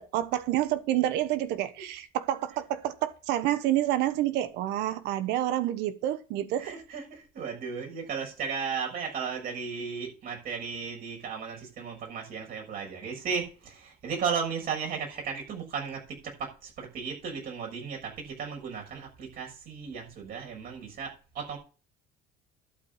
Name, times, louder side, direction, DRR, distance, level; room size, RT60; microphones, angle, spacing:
voice 1, 0.0-6.7, right 13 dB, 75° right, 1.2 m, -28 dB
voice 2, 6.6-21.6, right 6 dB, 60° right, 6.7 m, -35 dB
12.0 x 5.1 x 8.1 m
supercardioid pair, 90°, 17 cm